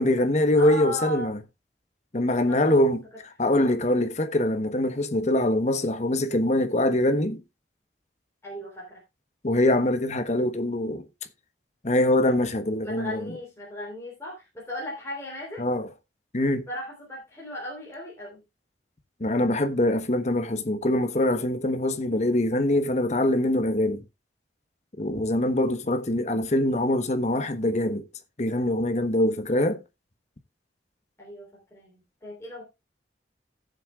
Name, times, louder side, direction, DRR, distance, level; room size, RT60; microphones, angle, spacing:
voice 1, 0.0-1.4 2.1-3.0 3.4-7.4 9.4-11.0 11.8-13.3 15.6-15.9 16.3-16.7 19.2-24.0 25.0-28.0 28.4-29.8, left 1 dB, 40° left, 1.0 m, -23 dB
voice 2, 0.5-1.3 2.5-2.7 8.4-9.0 12.2-12.3 12.8-15.7 16.7-18.4 31.2-32.6, left 1 dB, 15° left, 3.7 m, -37 dB
16.5 x 7.6 x 2.3 m
head